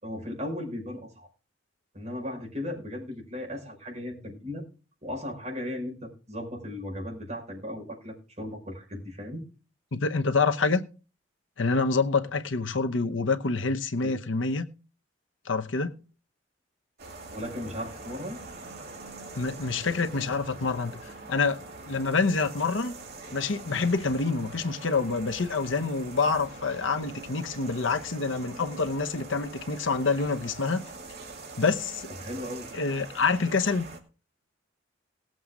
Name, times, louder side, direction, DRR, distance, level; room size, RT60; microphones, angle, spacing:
voice 1, 0.0-1.3 1.9-4.6 5.0-9.4 14.0-14.1 17.3-18.4 32.2-32.7, left 1 dB, 40° right, 5.3 m, -36 dB
voice 2, 9.9-10.9 11.6-14.7 15.5-15.9 19.3-22.9 23.3-30.8 31.6-32.1 32.7-33.9, left 4 dB, 90° left, 0.9 m, -27 dB
sound 1, 17.0-34.0, right 3 dB, 55° right, 2.6 m, -44 dB
18.5 x 7.8 x 3.8 m
head